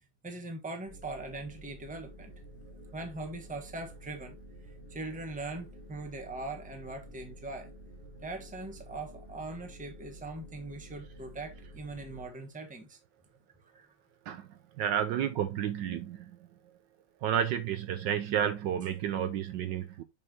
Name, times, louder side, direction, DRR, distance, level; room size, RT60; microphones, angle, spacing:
voice 1, 0.2-2.3 2.9-4.4 4.9-7.7 8.2-13.0 13.7-13.9, right 2 dB, 5° right, 1.0 m, -41 dB
sound 1, 0.8-12.3, right 1 dB, 35° left, 1.7 m, -50 dB
voice 2, 14.8-16.4 17.2-20.0, right 9 dB, 70° right, 1.2 m, -31 dB
7.0 x 5.6 x 2.8 m
omnidirectional pair, 2.2 m